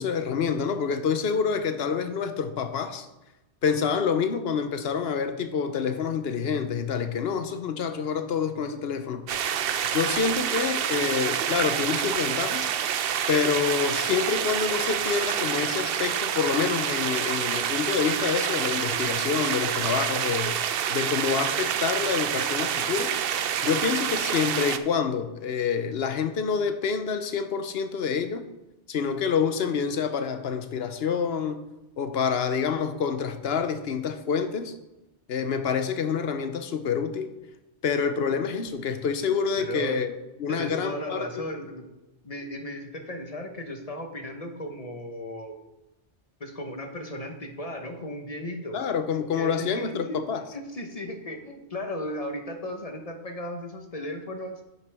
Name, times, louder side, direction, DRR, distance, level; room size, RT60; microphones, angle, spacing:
voice 1, 0.0-3.1 3.6-9.3 9.9-12.7 13.3-23.1 23.6-28.5 28.9-31.6 32.0-34.7 35.3-37.3 37.8-40.1 40.4-41.4 48.7-50.4, left 6 dB, 65° left, 9 dB, 0.9 m, -27 dB
sound 1, 9.3-24.8, right 9 dB, 65° right, 0.7 m, -27 dB
voice 2, 39.6-40.0 40.5-41.9 42.2-45.6 46.4-48.8 49.4-50.2 50.5-54.6, left 1 dB, 35° left, 4 dB, 1.0 m, -35 dB
10.0 x 6.8 x 3.4 m, 0.98 s
omnidirectional pair, 1.2 m